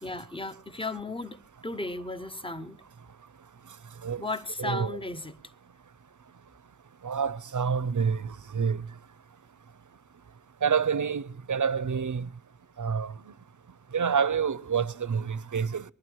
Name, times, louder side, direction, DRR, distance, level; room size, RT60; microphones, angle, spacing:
voice 1, 0.0-2.8 4.2-5.4, left 2 dB, 15° left, 0.8 m, -35 dB
voice 2, 7.0-8.8 10.6-11.2 11.5-12.3 12.8-13.1 13.9-15.8, right 6 dB, 65° right, 0.6 m, -27 dB
20.0 x 12.0 x 4.6 m
wide cardioid pair, 60°, 32 cm